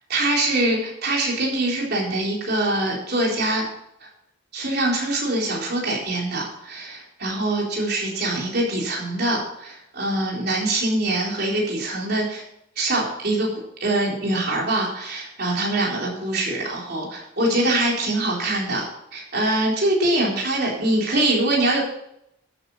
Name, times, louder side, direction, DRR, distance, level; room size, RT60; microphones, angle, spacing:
voice 1, 0.1-3.7 4.0-4.1 4.5-12.4 12.8-13.5 13.8-21.8, right 1 dB, 50° right, -3 dB, 4.1 m, -23 dB
12.5 x 8.2 x 5.5 m, 0.79 s
head